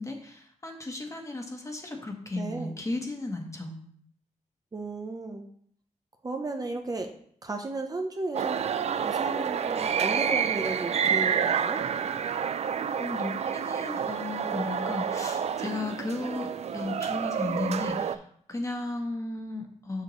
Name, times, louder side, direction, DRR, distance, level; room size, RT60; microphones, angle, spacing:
voice 1, 0.0-3.7 12.7-20.0, left 2 dB, 25° left, 2 dB, 1.3 m, -35 dB
voice 2, 2.4-2.7 4.7-5.4 6.2-7.1 7.4-8.6 9.0-11.8, right 3 dB, 30° right, 4 dB, 0.7 m, -34 dB
sound 1, 8.3-18.2, right 7 dB, 55° right, 0.4 m, -29 dB
6.8 x 6.3 x 3.2 m, 0.62 s
cardioid pair, 85°, 13 cm